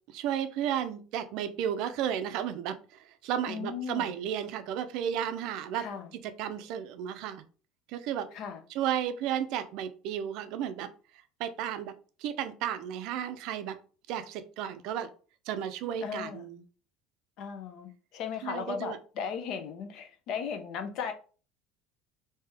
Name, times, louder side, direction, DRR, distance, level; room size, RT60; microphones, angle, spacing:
voice 1, 0.1-5.9 6.2-7.4 7.9-8.3 8.7-10.9 11.4-11.9 12.2-13.8 14.1-15.1 15.5-16.6 18.4-19.0, right 9 dB, 55° right, 0.4 m, -33 dB
voice 2, 3.5-4.1 5.8-6.1 8.3-8.6 16.0-16.5 17.4-21.1, left 6 dB, 50° left, 0.6 m, -36 dB
3.3 x 2.8 x 3.4 m
cardioid pair, 170°, 0 cm